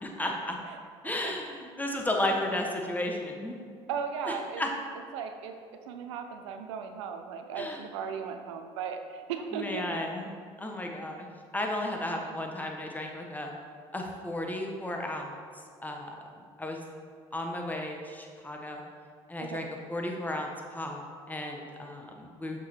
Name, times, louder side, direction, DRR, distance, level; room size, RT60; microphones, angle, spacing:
voice 1, 0.0-0.6 1.0-3.5 4.3-4.7 7.5-7.9 9.5-10.3 10.6-11.3 11.5-13.5 13.9-15.3 15.8-16.2 16.6-16.8 17.3-18.8 19.3-22.6, left 1 dB, 10° left, 1 dB, 1.2 m, -34 dB
voice 2, 3.9-4.6 5.1-5.5 5.9-9.8 12.2-12.3 19.5-19.6, right 6 dB, 85° right, 6 dB, 0.6 m, -36 dB
6.6 x 5.3 x 4.5 m, 2.2 s
hypercardioid pair, 65°, 15 cm